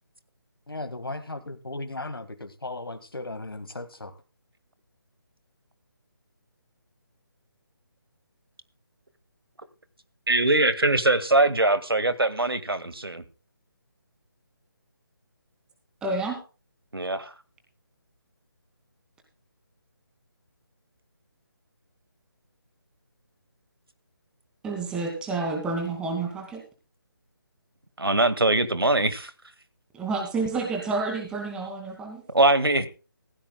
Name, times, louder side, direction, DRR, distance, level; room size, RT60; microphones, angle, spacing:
voice 1, 0.7-4.1, left 2 dB, 75° left, 1.9 m, -36 dB
voice 2, 10.3-13.2 16.9-17.3 28.0-29.3 32.3-32.9, right 2 dB, 80° right, 1.9 m, -22 dB
voice 3, 16.0-16.4 24.6-26.6 29.9-32.2, right 3 dB, 5° right, 2.4 m, -29 dB
17.0 x 16.0 x 2.3 m
figure-of-eight pair, 150°, 12 cm